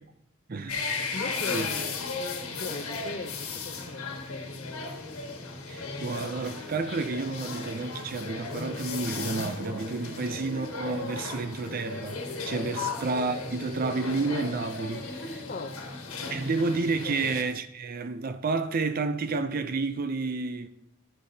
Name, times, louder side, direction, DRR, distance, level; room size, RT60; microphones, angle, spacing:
voice 1, 0.5-0.8 1.5-1.7 5.7-15.5 16.3-20.7, right 3 dB, 40° right, 0.5 m, -30 dB
sound 1, 0.7-17.4, left 4 dB, 70° left, 1.5 m, -36 dB
voice 2, 1.1-2.0 2.5-5.0 10.0-10.3 12.6-12.9 15.5-15.8 17.1-17.2, left 2 dB, 40° left, 0.6 m, -39 dB
11.5 x 10.5 x 2.7 m
head